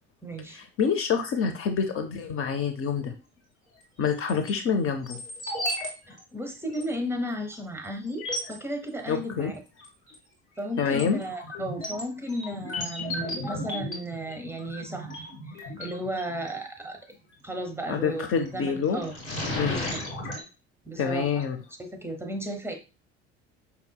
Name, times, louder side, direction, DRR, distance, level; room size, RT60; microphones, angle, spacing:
voice 1, 0.2-0.6 6.1-9.5 10.6-17.0 17.4-18.3 18.5-19.1 19.6-19.9 20.9-21.3 21.8-22.8, equal, 5° right, 3 dB, 0.8 m, -34 dB
voice 2, 0.8-3.1 4.0-5.2 9.1-9.5 10.8-11.2 17.9-19.1 19.5-19.9 21.0-21.6, left 6 dB, 40° left, 7 dB, 0.7 m, -27 dB
sound 1, 4.0-4.5 5.0-5.9 6.1-6.2 6.7-6.8 7.5-7.6 8.1-8.5 9.8-10.2 10.6-16.5 18.1-18.5 18.9-20.4, left 1 dB, 80° left, 1.8 m, -35 dB
5.3 x 2.8 x 2.2 m, 0.30 s
hypercardioid pair, 65°, 34 cm